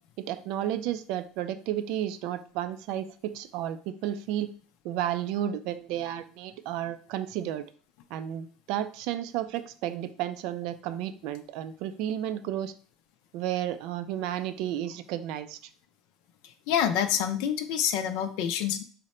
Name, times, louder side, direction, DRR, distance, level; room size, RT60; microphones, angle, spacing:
voice 1, 0.2-4.5 4.8-7.6 8.1-12.7 13.3-15.6, right 11 dB, 65° right, 11 dB, 0.3 m, -32 dB
voice 2, 16.4-18.8, left 9 dB, 70° left, 8 dB, 0.4 m, -27 dB
3.8 x 2.1 x 4.2 m, 0.43 s
cardioid pair, 145°, 0 cm